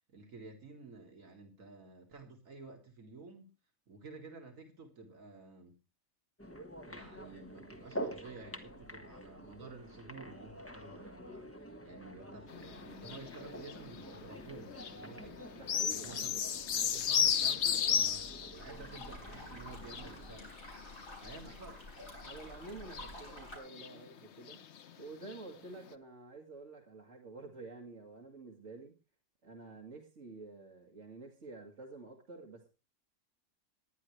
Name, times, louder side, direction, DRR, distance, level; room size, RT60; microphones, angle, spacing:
voice 1, 0.0-3.5 3.9-5.8 6.9-15.4 15.8-16.5 16.8-20.5 21.2-21.8, right 3 dB, 75° right, 2.2 m, -51 dB
sound 1, 6.4-20.4, right 1 dB, 10° left, 1.5 m, -48 dB
sound 2, 12.5-15.0 15.3-18.6 18.9-21.7 22.2-22.4 22.7-23.4 23.7-24.2 24.5-24.9 25.2-25.4 25.9-26.0, left 8 dB, 60° left, 1.0 m, -34 dB
voice 2, 15.5-16.4 21.4-21.6 22.2-24.6 25.0-28.9 29.4-32.7, right 3 dB, 60° right, 2.2 m, -49 dB
sound 3, 18.5-23.6, left 1 dB, 75° left, 7.6 m, -50 dB
19.0 x 10.5 x 3.2 m
omnidirectional pair, 1.4 m